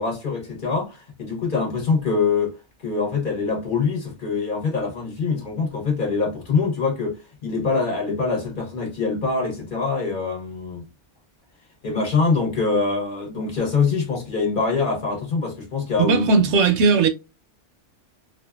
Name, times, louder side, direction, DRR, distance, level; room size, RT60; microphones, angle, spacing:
voice 1, 0.0-2.6 2.8-10.9 11.8-16.3, left 4 dB, 45° left, 1.0 m, -24 dB
voice 2, 16.0-17.1, right 4 dB, 70° right, 0.8 m, -17 dB
2.6 x 2.4 x 2.2 m
omnidirectional pair, 1.2 m